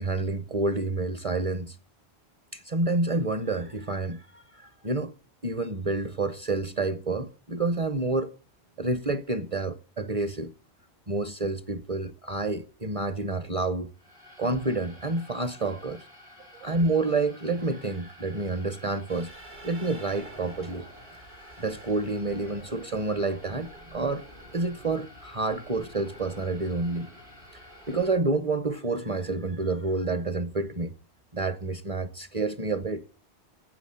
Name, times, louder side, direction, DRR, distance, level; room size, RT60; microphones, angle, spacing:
voice 1, 0.0-1.8 2.5-5.1 5.4-8.3 8.8-10.5 11.1-13.9 14.4-16.0 16.5-19.3 19.6-20.9 21.6-24.2 24.5-27.1 27.9-30.9 31.3-33.0, right 3 dB, 35° right, 0.8 m, -29 dB
sound 1, 13.9-28.1, left 2 dB, 90° right, 4.9 m, -52 dB
sound 2, 19.1-28.1, right 2 dB, 70° right, 3.9 m, -49 dB
12.0 x 7.9 x 8.8 m
omnidirectional pair, 1.1 m